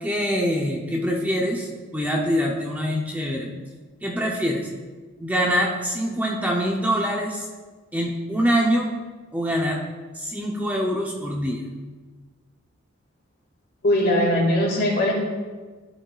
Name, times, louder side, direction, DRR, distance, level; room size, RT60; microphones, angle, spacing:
voice 1, 0.0-3.5 4.0-4.7 5.2-7.5 7.9-8.9 9.3-9.8 10.1-11.6, equal, 10° right, -1 dB, 0.6 m, -24 dB
voice 2, 13.8-15.1, left 1 dB, 55° left, -2 dB, 2.1 m, -20 dB
12.0 x 6.3 x 2.4 m, 1.4 s
head